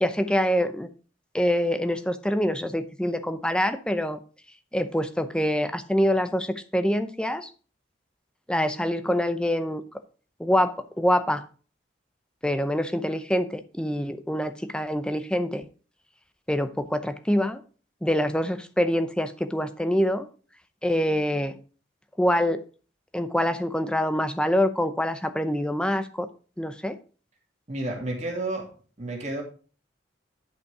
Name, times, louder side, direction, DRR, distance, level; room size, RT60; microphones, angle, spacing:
voice 1, 0.0-0.9 1.3-4.2 4.7-7.5 8.5-9.8 10.4-11.4 12.4-15.6 16.5-17.6 18.0-20.3 20.8-21.6 22.2-22.6 23.1-26.3 26.6-27.0, equal, 5° left, 9 dB, 0.7 m, -25 dB
voice 2, 27.7-28.7 29.0-29.4, right 2 dB, 40° right, 0 dB, 2.7 m, -31 dB
11.0 x 5.7 x 4.8 m, 0.38 s
head